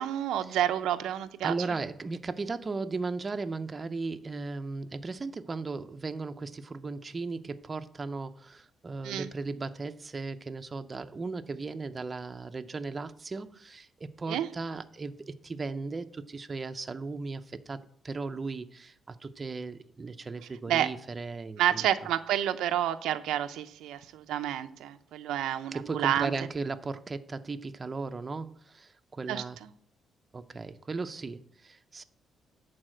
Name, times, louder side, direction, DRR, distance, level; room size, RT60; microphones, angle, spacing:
voice 1, 0.0-1.5 9.0-9.3 14.3-14.5 20.7-20.9 21.6-26.3 29.3-29.4, right 11 dB, 85° right, 0.6 m, -29 dB
voice 2, 1.4-21.9 25.7-29.6 30.3-32.0, right 3 dB, 30° right, 0.7 m, -36 dB
11.0 x 4.2 x 7.7 m
cardioid pair, 90°, 0 cm